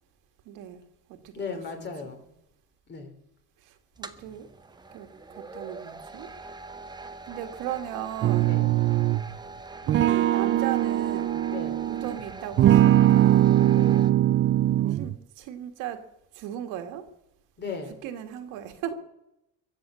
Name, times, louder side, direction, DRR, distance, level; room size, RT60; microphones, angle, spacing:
voice 1, 0.5-0.8 1.1-2.1 3.6-4.5 4.9-6.3 7.3-8.6 9.9-11.4 11.9-13.6 14.9-16.0 16.3-17.1 18.0-18.9, right 11 dB, 85° right, 7 dB, 2.0 m, -37 dB
voice 2, 1.3-2.2 2.9-3.1 8.4-8.7 11.4-11.9 13.7-14.1 17.6-18.0, left 4 dB, 35° left, 6 dB, 3.4 m, -37 dB
sound 1, 3.9-14.1, right 3 dB, 15° right, 1.1 m, -43 dB
sound 2, 8.2-9.3 9.9-12.1 12.6-15.2, right 13 dB, 40° right, 0.5 m, -21 dB
22.5 x 7.9 x 7.0 m, 0.85 s
cardioid pair, 125°, 31 cm